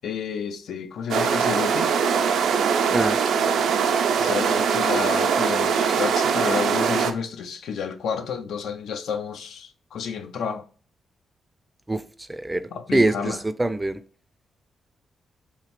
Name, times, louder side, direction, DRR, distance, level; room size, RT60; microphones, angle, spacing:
voice 1, 0.0-1.9 4.2-10.6 12.7-13.4, left 6 dB, 80° left, 0.4 m, -30 dB
sound 1, 1.1-7.1, right 6 dB, 85° right, 0.4 m, -22 dB
voice 2, 12.3-12.6 12.9-14.0, right 2 dB, 15° right, 0.3 m, -23 dB
3.4 x 2.9 x 2.9 m
cardioid pair, 80°, 0 cm